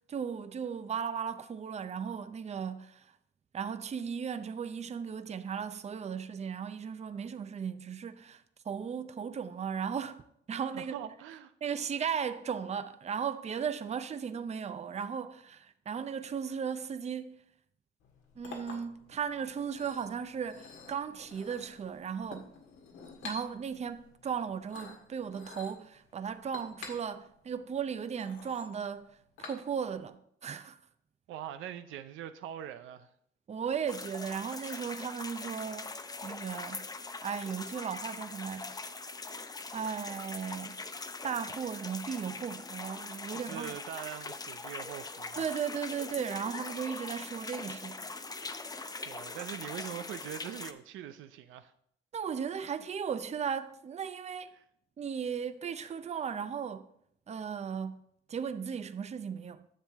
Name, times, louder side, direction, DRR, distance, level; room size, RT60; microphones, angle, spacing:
voice 1, 0.1-3.1 3.5-10.2 10.5-10.9 11.6-17.4 18.4-22.5 23.2-30.8 33.5-36.9 37.2-38.8 39.7-40.8 41.2-43.8 45.4-48.0 52.1-54.6 55.0-56.9 57.3-58.0 58.3-59.6, right 7 dB, 35° right, 0.6 m, -36 dB
voice 2, 10.7-11.5 31.3-33.1 43.3-45.4 49.0-51.7, right 10 dB, 90° right, 0.6 m, -42 dB
Chink clink, 18.0-30.0, left 4 dB, 90° left, 1.7 m, -50 dB
sound 1, 33.9-50.7, left 3 dB, 20° left, 0.6 m, -42 dB
10.0 x 7.2 x 3.5 m
cardioid pair, 90°, 20 cm